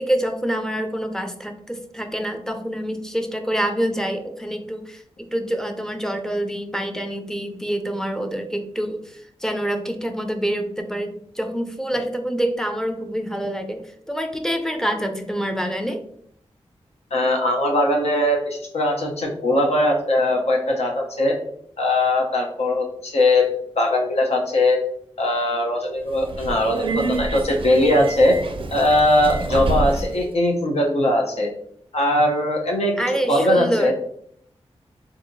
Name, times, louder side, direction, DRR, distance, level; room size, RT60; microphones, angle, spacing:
voice 1, 0.0-13.8 14.1-16.0 33.0-33.9, right 1 dB, 5° left, 5 dB, 0.5 m, -26 dB
voice 2, 17.1-21.4 21.8-24.8 25.2-28.4 28.7-31.5 31.9-32.9 33.3-33.9, left 1 dB, 70° left, 1 dB, 0.7 m, -20 dB
Subway metro underground, 26.0-30.3, right 2 dB, 50° right, 0.4 m, -27 dB
3.7 x 2.7 x 2.6 m, 0.67 s
cardioid pair, 60°, 11 cm